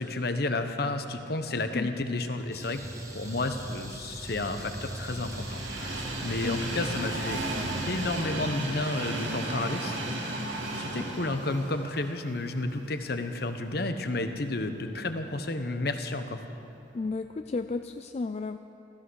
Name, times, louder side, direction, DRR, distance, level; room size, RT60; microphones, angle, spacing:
voice 1, 0.0-2.8 3.1-7.4 7.9-10.5 10.7-16.4, left 2 dB, 55° left, 7 dB, 1.0 m, -31 dB
sound 1, 2.5-8.2, right 1 dB, 20° right, 1.2 m, -41 dB
Train, 3.4-13.5 14.0-14.1 15.2-15.3, right 2 dB, 85° right, 2.3 m, -35 dB
voice 2, 16.9-18.6, left 3 dB, 35° left, 9 dB, 0.3 m, -33 dB
15.5 x 14.5 x 6.3 m, 2.9 s
head